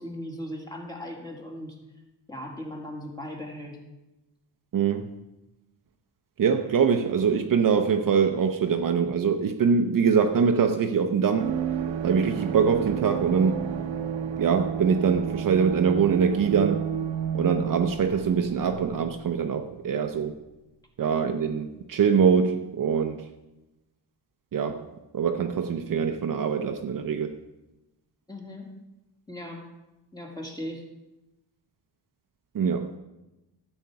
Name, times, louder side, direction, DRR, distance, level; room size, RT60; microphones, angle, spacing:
voice 1, 0.0-1.8 2.3-3.8 28.3-28.7 29.3-29.7 30.1-30.8, left 1 dB, 10° left, 1.9 m, -38 dB
voice 2, 4.7-5.1 6.4-11.5 12.0-13.7 14.3-16.9 17.3-20.3 21.0-23.3 24.5-24.9 25.1-27.4 32.5-33.0, right 6 dB, 50° right, 0.7 m, -23 dB
sound 1, 11.4-19.9 20.1-20.3, right 8 dB, 90° right, 1.0 m, -31 dB
13.0 x 8.1 x 4.7 m
wide cardioid pair, 145°, 43 cm